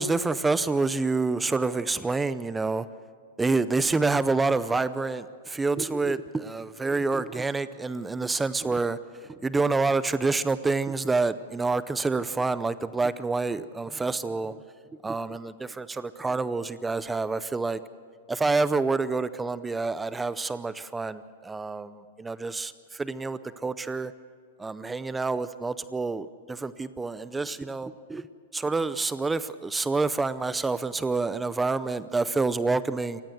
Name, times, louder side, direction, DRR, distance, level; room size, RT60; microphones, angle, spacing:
voice 1, 0.0-2.9 3.4-14.6 15.0-17.8 18.3-24.1 24.6-28.3 28.5-33.2, right 3 dB, 10° right, 15 dB, 0.6 m, -27 dB
28.0 x 15.5 x 8.0 m, 2.1 s
hypercardioid pair, 135°, 0 cm